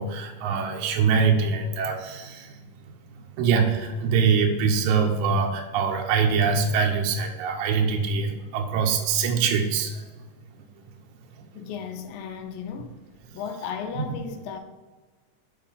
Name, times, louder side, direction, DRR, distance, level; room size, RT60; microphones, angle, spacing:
voice 1, 0.0-10.1 10.5-10.9 11.4-11.7 13.3-13.4 14.0-14.1, right 5 dB, 75° right, 1.9 m, -24 dB
voice 2, 11.6-13.0 13.3-14.6, left 6 dB, 85° left, 2.5 m, -35 dB
7.2 x 4.7 x 5.6 m
omnidirectional pair, 4.0 m